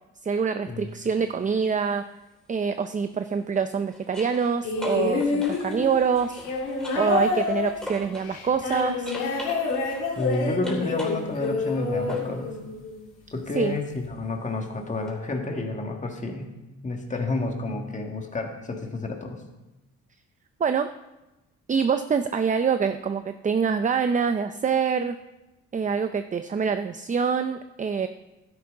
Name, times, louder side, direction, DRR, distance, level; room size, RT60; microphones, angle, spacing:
voice 1, 0.2-2.0 2.5-6.4 6.9-9.1 13.6-13.8 20.6-20.9 21.7-25.2 25.7-28.1, right 6 dB, 25° right, 9 dB, 0.5 m, -25 dB
sound 1, 0.9-1.1 3.4-8.3 8.7-12.4 15.1-15.2, left 1 dB, ahead, 3.6 m, -42 dB
sound 2, 4.6-13.0 14.0-14.1, left 3 dB, 90° left, 2.5 m, -28 dB
voice 2, 10.2-12.6 13.3-19.4, left 2 dB, 25° left, 2 dB, 1.8 m, -30 dB
12.0 x 10.5 x 3.7 m, 1.0 s
cardioid pair, 90°, 30 cm